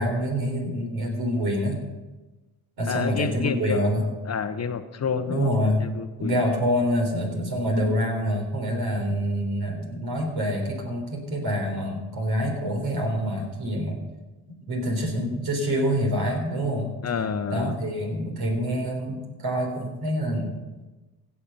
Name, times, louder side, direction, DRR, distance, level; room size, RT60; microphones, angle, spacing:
voice 1, 0.0-1.8 2.8-4.1 5.3-5.8 6.2-14.0 14.7-16.9 17.5-20.6, equal, 70° right, 1 dB, 4.0 m, -26 dB
voice 2, 2.9-3.9 4.3-6.4 17.0-17.8, left 6 dB, 40° left, 10 dB, 0.9 m, -29 dB
16.5 x 7.0 x 5.6 m, 1.2 s
supercardioid pair, 65°, 38 cm